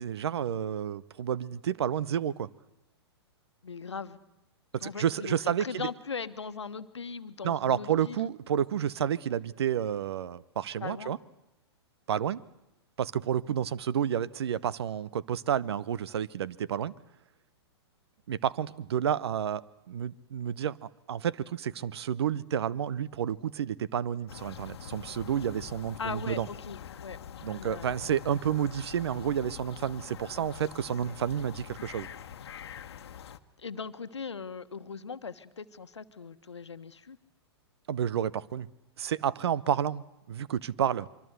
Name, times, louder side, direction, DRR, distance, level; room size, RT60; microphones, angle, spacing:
voice 1, 0.0-2.5 4.7-5.9 7.4-11.2 12.1-12.4 13.0-16.9 18.3-26.5 27.4-32.1 37.9-38.7 39.0-40.0 40.3-41.1, right 9 dB, 70° right, 19 dB, 0.9 m, -30 dB
voice 2, 3.6-4.2 4.8-8.3 10.8-11.2 26.0-27.2 27.4-28.1 33.6-37.2, left 5 dB, 85° left, 11 dB, 1.3 m, -39 dB
sound 1, 24.3-33.4, left 9 dB, 65° left, 1.3 m, -45 dB
24.5 x 24.0 x 8.1 m, 0.92 s
hypercardioid pair, 115°, 14 cm